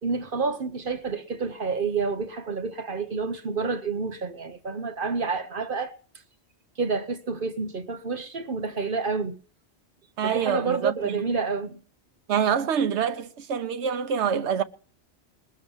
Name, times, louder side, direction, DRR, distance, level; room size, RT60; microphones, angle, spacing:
voice 1, 0.0-6.0 6.8-9.4 10.2-11.8, right 4 dB, 50° right, 1.1 m, -29 dB
voice 2, 10.2-11.2 12.3-14.6, right 7 dB, 75° right, 1.2 m, -26 dB
20.5 x 7.2 x 7.0 m
omnidirectional pair, 1.2 m